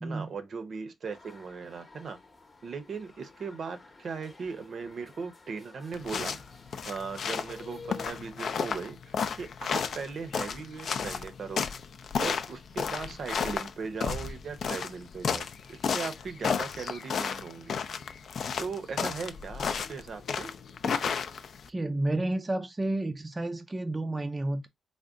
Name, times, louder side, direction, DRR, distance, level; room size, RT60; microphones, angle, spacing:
voice 1, 0.0-2.2 2.6-6.4 6.9-11.6 12.2-17.8 18.6-20.5, right 5 dB, 60° right, 0.6 m, -38 dB
sound 1, 1.0-8.1, left 4 dB, 35° left, 0.8 m, -51 dB
sound 2, 5.9-21.7, left 6 dB, 65° left, 0.4 m, -33 dB
voice 2, 21.7-24.7, right 2 dB, 20° right, 0.3 m, -31 dB
3.6 x 2.1 x 3.7 m
cardioid pair, 115°, 0 cm